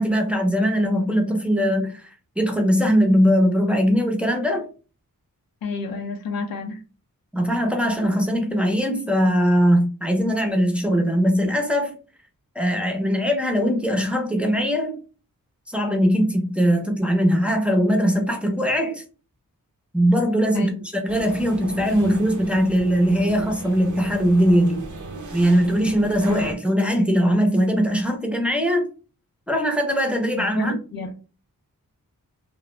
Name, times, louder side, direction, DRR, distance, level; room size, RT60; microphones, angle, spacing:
voice 1, 0.0-4.7 7.3-12.0 12.6-15.0 15.7-19.0 19.9-20.7 21.0-24.9 25.3-28.9 29.5-30.8, equal, 5° right, 0.5 m, -20 dB
voice 2, 5.6-6.8 20.5-20.8 30.3-31.1, left 3 dB, 85° left, 0.5 m, -30 dB
sound 1, 21.1-26.5, right 3 dB, 60° right, 0.5 m, -37 dB
2.4 x 2.0 x 3.1 m
wide cardioid pair, 95°, 34 cm